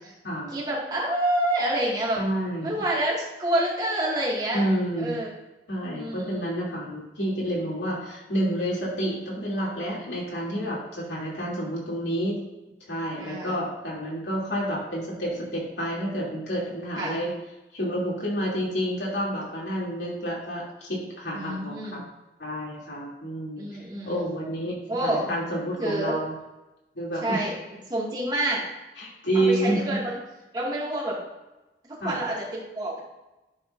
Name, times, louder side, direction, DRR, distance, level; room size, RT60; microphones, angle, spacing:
voice 1, 0.5-2.2 2.6-3.1 3.4-4.6 5.0-5.3 5.9-6.4 13.2-13.6 17.0-17.2 21.3-22.0 23.6-24.3 24.9-25.3 25.8-26.2 27.2-27.6 27.9-28.6 29.3-30.2 30.5-31.2 32.0-33.0, right 1 dB, 25° right, -5 dB, 2.1 m, -27 dB
voice 2, 2.1-2.8 4.5-5.2 5.7-12.4 12.9-17.3 17.7-22.0 22.4-23.6 24.0-26.3 26.9-27.5 29.0-30.0 32.0-32.2, right 1 dB, 85° left, -5 dB, 2.9 m, -29 dB
10.0 x 6.6 x 2.6 m, 1.0 s
head